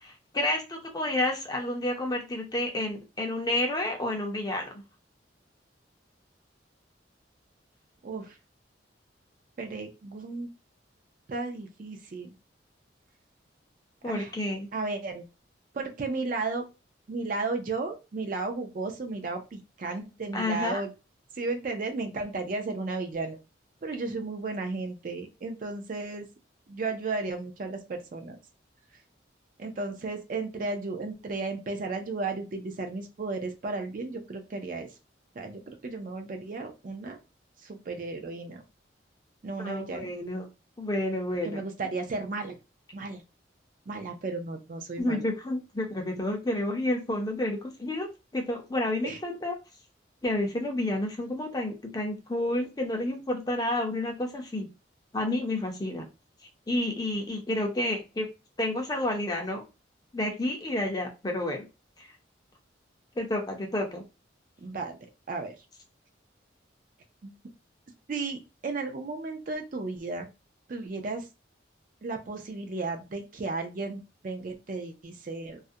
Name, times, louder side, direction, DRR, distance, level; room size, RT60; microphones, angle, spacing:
voice 1, 0.0-4.7 14.0-14.7 20.3-20.8 39.6-40.4 40.8-41.6 45.0-48.1 48.3-49.6 50.2-54.7 55.1-56.0 56.7-58.3 58.6-59.6 60.1-61.6 62.0-62.1 63.2-64.0, left 1 dB, 20° left, 2 dB, 0.5 m, -30 dB
voice 2, 8.0-8.4 9.6-10.5 11.3-12.3 14.0-14.3 14.7-15.3 15.7-16.7 17.1-20.9 21.3-23.4 23.8-26.3 26.7-28.4 29.6-34.9 35.4-37.2 37.6-38.6 39.4-40.1 41.4-42.6 42.9-43.2 43.9-45.3 49.0-49.2 64.6-65.0 65.3-65.6 67.2-67.3 68.1-70.3 70.7-71.3 72.0-75.6, right 3 dB, 45° right, 5 dB, 0.4 m, -34 dB
2.4 x 2.1 x 2.6 m, 0.27 s
head